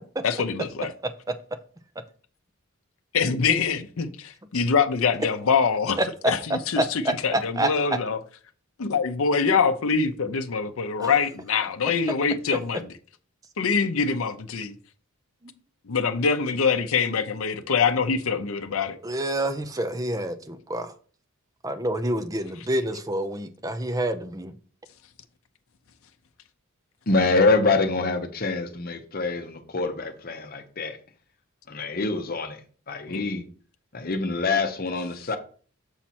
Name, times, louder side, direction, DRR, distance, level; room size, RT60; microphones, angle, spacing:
voice 1, 0.2-0.9 3.1-6.0 6.3-8.2 8.8-12.9 13.6-14.7 15.9-19.0 33.1-33.2, left 5 dB, 75° left, 0.6 m, -24 dB
voice 2, 6.8-7.7 11.0-11.1 19.0-20.9 21.6-24.5, right 1 dB, 15° right, 0.5 m, -27 dB
voice 3, 27.1-31.0 31.7-32.6 32.9-33.4 33.9-35.4, left 3 dB, 45° left, 0.9 m, -25 dB
7.2 x 4.3 x 4.3 m
head